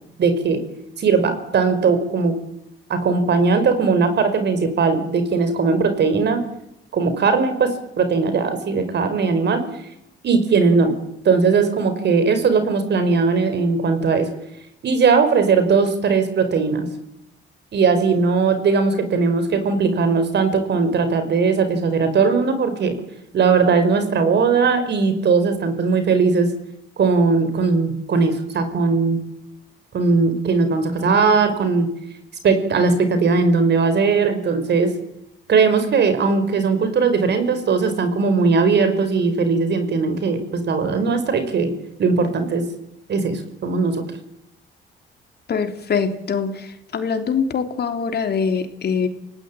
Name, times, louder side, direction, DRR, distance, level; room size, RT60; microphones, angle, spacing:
voice 1, 0.2-0.6 1.0-2.4 2.9-6.4 6.9-9.6 10.2-11.0 11.3-14.3 14.8-16.9 17.7-23.0 23.3-26.5 27.0-29.2 29.9-31.9 32.4-34.9 35.5-41.7 42.0-42.6 43.1-44.0, right 4 dB, 60° right, 9 dB, 5.3 m, -19 dB
voice 2, 45.5-49.1, left 6 dB, 55° left, 6 dB, 3.5 m, -23 dB
29.0 x 18.5 x 9.1 m, 0.81 s
cardioid pair, 90°, 20 cm